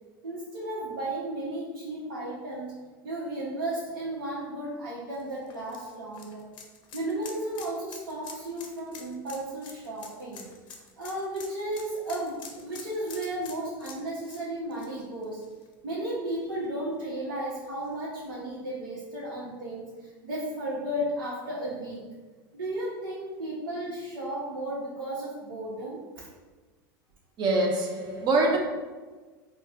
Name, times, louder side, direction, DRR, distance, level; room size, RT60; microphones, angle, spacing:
voice 1, 0.2-2.7 3.0-6.4 6.9-10.4 11.0-15.4 15.8-22.0 22.5-26.3, right 1 dB, 85° right, 1.1 m, -34 dB
sound 1, 5.1-15.9 16.3-16.4 17.8-17.9, left 6 dB, 40° left, 0.7 m, -47 dB
voice 2, 27.4-28.6, right 2 dB, 40° right, 0.8 m, -24 dB
4.1 x 2.3 x 3.5 m
hypercardioid pair, 100°, 11 cm